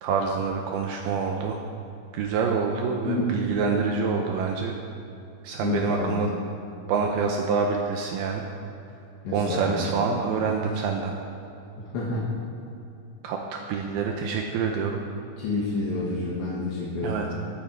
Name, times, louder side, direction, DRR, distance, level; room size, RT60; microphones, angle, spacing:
voice 1, 0.0-1.6 2.1-4.8 5.4-6.3 6.9-8.4 9.3-11.2 13.2-15.0 17.0-17.3, right 5 dB, 90° right, 2 dB, 2.2 m, -26 dB
voice 2, 5.6-6.1 9.2-9.8 11.9-12.3 15.4-17.3, left 3 dB, 70° left, -6 dB, 3.8 m, -29 dB
21.5 x 8.8 x 4.6 m, 2.8 s
omnidirectional pair, 5.6 m